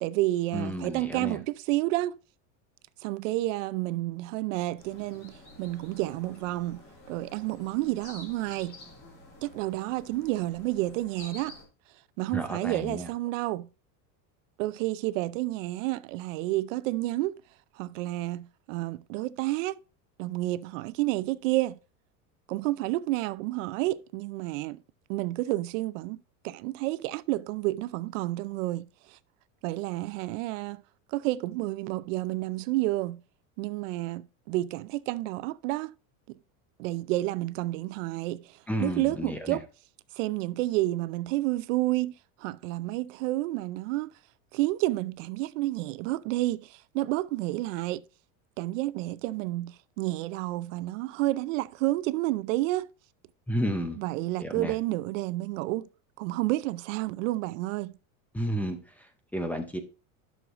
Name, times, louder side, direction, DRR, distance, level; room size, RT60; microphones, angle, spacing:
voice 1, 0.0-2.2 3.0-6.8 7.1-8.8 9.4-11.6 12.2-13.7 14.6-17.4 17.8-19.8 20.2-21.8 22.5-24.8 25.1-29.2 29.6-30.8 31.1-33.2 33.6-35.9 36.3-36.4 36.8-39.7 40.1-44.1 44.5-48.0 48.6-52.9 54.0-55.9 56.2-57.9, right 17 dB, 70° right, 0.5 m, -30 dB
voice 2, 0.5-1.4 12.3-13.1 38.7-39.6 53.5-54.0 54.4-54.7 58.3-59.8, equal, 5° left, 0.6 m, -32 dB
sound 1, 4.8-11.6, left 2 dB, 35° left, 2.7 m, -50 dB
11.0 x 6.5 x 2.5 m
supercardioid pair, 155°, 40 cm